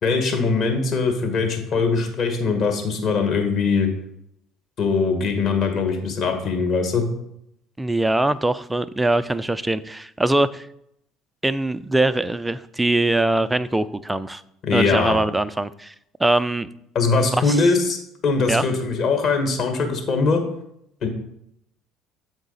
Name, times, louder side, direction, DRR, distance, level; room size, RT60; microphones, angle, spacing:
voice 1, 0.0-3.9 4.8-7.0 14.6-15.2 16.9-18.0 18.2-20.4 21.0-21.1, left 4 dB, 50° left, 4 dB, 1.6 m, -21 dB
voice 2, 7.8-10.7 11.4-14.4 14.7-15.9 16.2-16.7 17.2-17.7 18.5-18.6, right 2 dB, 10° right, 14 dB, 0.4 m, -22 dB
8.0 x 4.7 x 4.1 m, 0.75 s
hypercardioid pair, 60°, 0 cm